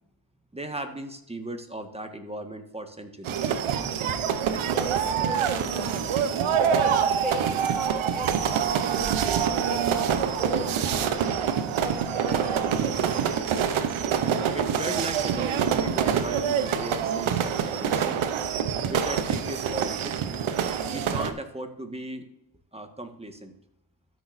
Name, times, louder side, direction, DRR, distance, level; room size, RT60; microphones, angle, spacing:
voice 1, 0.5-3.5 14.5-18.2 18.9-20.2 20.9-22.3 22.7-23.5, right 1 dB, 15° right, 6 dB, 1.5 m, -37 dB
sound 1, 3.2-21.3, right 8 dB, 85° right, 0.9 m, -26 dB
voice 2, 4.7-6.1 6.6-11.3 11.8-13.2, equal, 5° left, -1 dB, 1.6 m, -38 dB
13.0 x 6.2 x 2.6 m, 0.80 s
cardioid pair, 55°, 47 cm